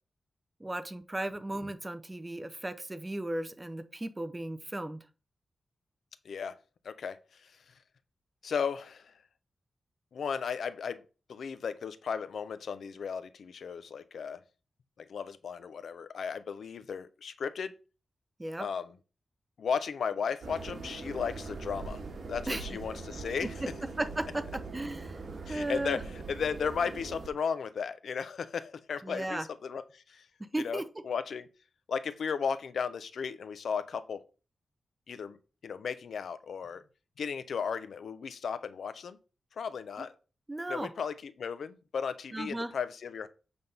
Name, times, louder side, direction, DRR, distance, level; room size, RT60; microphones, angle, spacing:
voice 1, 0.6-5.0 18.4-18.7 22.5-22.6 24.0-24.4 24.7-25.2 25.5-26.0 29.0-29.4 30.4-30.8 40.5-40.9 42.3-42.7, right 1 dB, 15° right, 0.6 m, -35 dB
voice 2, 6.2-6.6 6.8-7.5 8.4-9.1 10.1-11.0 11.3-14.4 15.0-17.8 18.6-18.9 19.6-22.0 22.3-23.5 25.5-30.3 30.6-31.5 31.9-34.2 35.1-35.4 35.6-36.8 37.2-39.2 39.6-40.1 40.7-43.3, left 6 dB, 75° left, 0.6 m, -35 dB
sound 1, 20.4-27.3, right 3 dB, 65° right, 1.8 m, -42 dB
7.9 x 3.5 x 5.5 m
wide cardioid pair, 160°, 0 cm